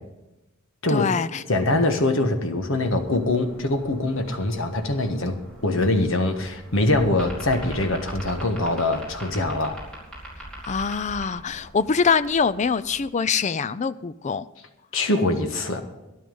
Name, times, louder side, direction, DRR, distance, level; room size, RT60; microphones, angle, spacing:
voice 1, 0.9-1.4 10.6-14.5, left 5 dB, 35° left, 15 dB, 0.4 m, -24 dB
voice 2, 1.5-9.8 14.9-15.8, left 2 dB, 65° left, 6 dB, 1.5 m, -23 dB
sound 1, 2.7-13.0, right 1 dB, 5° left, 4.6 m, -42 dB
12.5 x 11.0 x 5.4 m, 1.0 s
head